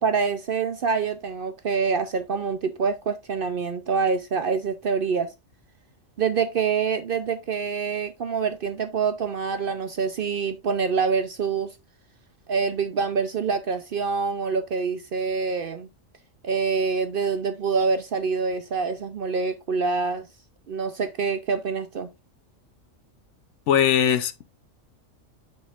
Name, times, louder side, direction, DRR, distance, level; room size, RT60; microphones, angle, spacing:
voice 1, 0.0-5.3 6.2-11.8 12.5-15.9 16.4-20.3 20.7-22.1, right 5 dB, 55° right, 0.7 m, -26 dB
voice 2, 23.7-24.5, left 9 dB, 70° left, 0.9 m, -21 dB
8.5 x 6.3 x 2.4 m
omnidirectional pair, 1.4 m